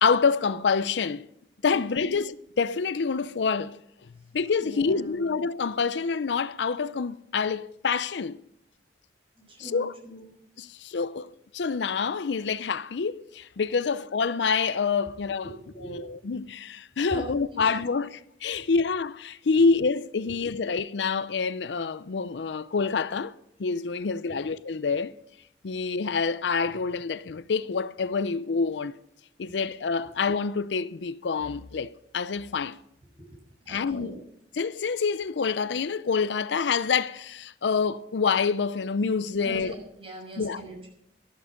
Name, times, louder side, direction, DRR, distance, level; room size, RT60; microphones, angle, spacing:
voice 1, 0.0-1.3 1.6-3.8 4.3-8.4 9.6-9.9 10.6-15.5 15.8-23.3 23.6-25.2 25.6-29.0 29.4-32.8 33.7-34.2 34.6-39.7 40.4-40.6, left 5 dB, 80° left, 0.5 m, -27 dB
voice 2, 1.7-2.1 4.6-5.3 9.4-10.3 15.4-16.1 17.1-17.8 20.2-20.3 33.1-33.4 33.6-34.2 39.4-40.9, right 1 dB, 30° right, 6.6 m, -41 dB
13.5 x 12.0 x 5.1 m
head